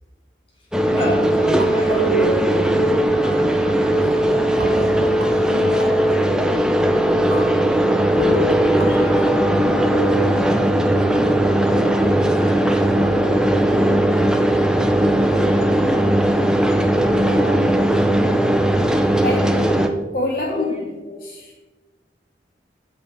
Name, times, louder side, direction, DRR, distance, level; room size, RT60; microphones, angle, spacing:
sound 1, 0.7-19.9, right 1 dB, 5° right, 0.5 m, -18 dB
voice 1, 0.8-5.3 8.1-10.6 11.1-14.1 14.5-15.8 19.3-19.9 20.2-21.0, equal, 30° left, -4 dB, 2.5 m, -28 dB
sound 2, 0.8-3.3 4.0-4.1 4.3-8.3 8.5-8.9, right 1 dB, 75° right, 1.9 m, -34 dB
voice 2, 5.5-6.0 7.8-8.4 17.0-17.7 19.1-19.6 20.1-20.7 21.1-21.5, left 2 dB, 55° left, -2 dB, 1.1 m, -28 dB
13.0 x 5.3 x 3.4 m, 1.2 s
head